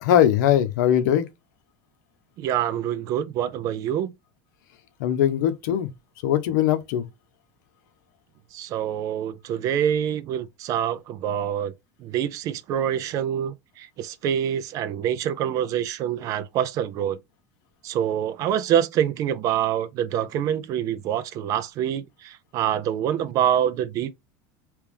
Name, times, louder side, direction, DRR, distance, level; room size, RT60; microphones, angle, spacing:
voice 1, 0.0-1.3 5.0-5.9 6.2-7.0, left 10 dB, 85° left, 0.8 m, -20 dB
voice 2, 2.4-4.1 8.5-11.7 12.0-17.2 17.8-24.1, right 10 dB, 35° right, 0.5 m, -26 dB
3.3 x 3.0 x 3.4 m
cardioid pair, 165°, 9 cm